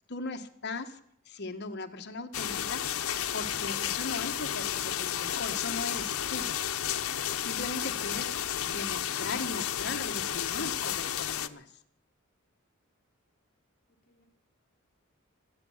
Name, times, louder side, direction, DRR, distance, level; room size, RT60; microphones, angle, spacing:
voice 1, 0.1-1.0 1.2-3.0 3.3-6.5 7.4-8.3 8.6-11.7, left 3 dB, 55° left, 6 dB, 1.4 m, -38 dB
sound 1, 2.3-11.5, left 10 dB, 90° left, 0.8 m, -32 dB
voice 2, 7.1-7.5 13.9-14.2, right 1 dB, 35° left, -1 dB, 3.9 m, -65 dB
23.0 x 8.5 x 7.2 m, 0.71 s
head